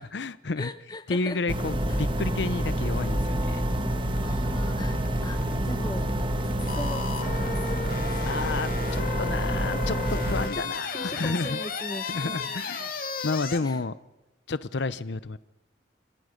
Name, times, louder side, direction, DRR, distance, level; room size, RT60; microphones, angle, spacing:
voice 1, 0.0-0.7 1.1-3.6 8.2-10.0 10.2-11.6 12.1-13.0 13.2-14.0 14.5-15.4, left 3 dB, 80° left, 15 dB, 0.7 m, -31 dB
voice 2, 0.6-1.4 1.9-2.0 4.2-6.1 6.4-8.3 9.0-9.6 9.9-12.9 13.6-13.8, left 1 dB, 20° left, 11 dB, 0.9 m, -40 dB
sound 1, 1.5-10.5, right 1 dB, 30° right, 1.1 m, -28 dB
sound 2, 1.8-13.6, left 3 dB, 50° left, 2.3 m, -34 dB
sound 3, 7.8-9.9 10.3-12.6, equal, 80° right, 5.9 m, -46 dB
27.0 x 21.5 x 5.3 m, 1.0 s
head